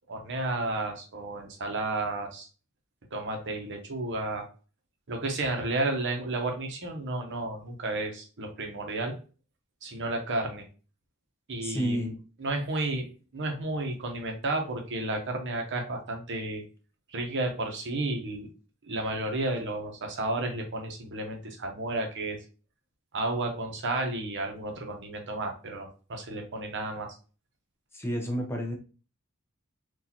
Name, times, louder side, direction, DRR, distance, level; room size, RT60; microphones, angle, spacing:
voice 1, 0.1-2.5 3.1-4.5 5.1-9.1 9.8-10.7 11.5-12.1 12.4-16.6 17.1-18.5 18.8-22.4 23.1-27.1, right 2 dB, 55° right, 3 dB, 0.9 m, -32 dB
voice 2, 11.6-12.1 27.9-28.8, equal, 10° left, 1 dB, 0.7 m, -30 dB
4.0 x 2.5 x 2.8 m, 0.36 s
head